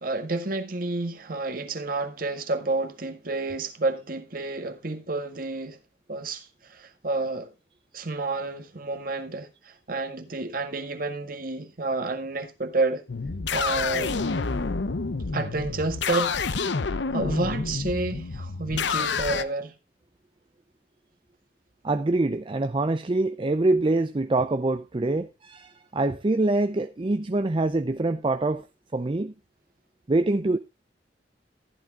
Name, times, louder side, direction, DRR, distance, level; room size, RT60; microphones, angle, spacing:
voice 1, 0.0-5.8 6.1-7.5 7.9-13.0 13.5-14.2 15.3-16.6 17.1-19.7, right 3 dB, 50° right, 1.7 m, -30 dB
sound 1, 13.1-19.4, left 4 dB, 85° left, 0.8 m, -28 dB
voice 2, 21.8-28.7 28.9-29.3 30.1-30.6, right 2 dB, 30° right, 0.5 m, -25 dB
15.0 x 10.5 x 2.4 m
head